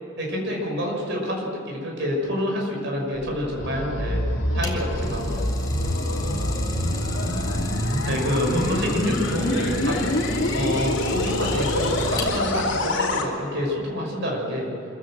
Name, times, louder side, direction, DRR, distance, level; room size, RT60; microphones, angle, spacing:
voice 1, 0.2-4.2 4.5-5.4 8.0-10.2 10.5-14.7, equal, 55° right, 0 dB, 6.2 m, -28 dB
sound 1, 3.1-13.3, left 1 dB, 55° left, 3.1 m, -26 dB
Idling, 4.3-12.7, left 1 dB, 20° left, 3.0 m, -31 dB
26.0 x 15.5 x 7.7 m, 2.9 s
head